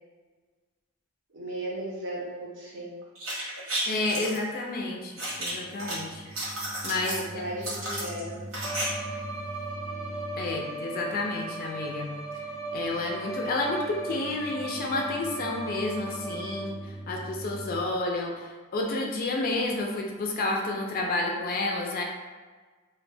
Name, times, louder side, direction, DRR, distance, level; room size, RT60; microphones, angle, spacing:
voice 1, 1.3-3.0 7.1-8.4, right 1 dB, 65° right, -3 dB, 0.6 m, -36 dB
sound 1, 3.1-4.4 5.2-5.9 6.2-7.2 7.6-8.8 9.1-9.2, right 1 dB, 85° right, 1.0 m, -33 dB
voice 2, 3.9-6.2 6.8-7.2 10.4-12.1 12.7-22.0, left 2 dB, 45° left, 1 dB, 0.3 m, -30 dB
sound 2, 5.3-17.8, right 1 dB, 30° right, 0.3 m, -44 dB
Bowed string instrument, 8.6-16.9, right 2 dB, 5° right, 0.8 m, -37 dB
2.2 x 2.1 x 3.2 m, 1.4 s
head